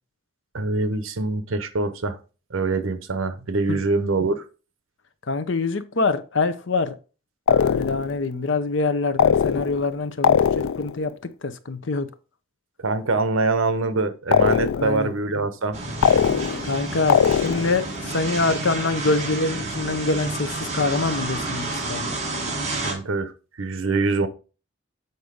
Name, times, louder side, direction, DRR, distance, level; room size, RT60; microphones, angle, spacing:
voice 1, 0.5-2.2 2.5-4.4 12.8-15.8 22.8-23.3 23.6-24.3, right 3 dB, 80° right, 0.9 m, -24 dB
voice 2, 5.3-6.9 7.5-11.1 11.4-12.1 14.8-15.1 16.7-22.1, left 3 dB, 65° left, 0.7 m, -25 dB
sound 1, 7.5-8.2 9.2-9.9 10.2-11.0 14.3-15.0 16.0-16.8 17.1-17.8, left 7 dB, 90° left, 0.4 m, -20 dB
sound 2, 15.7-22.9, right 2 dB, 35° right, 1.9 m, -30 dB
8.0 x 4.1 x 5.0 m
head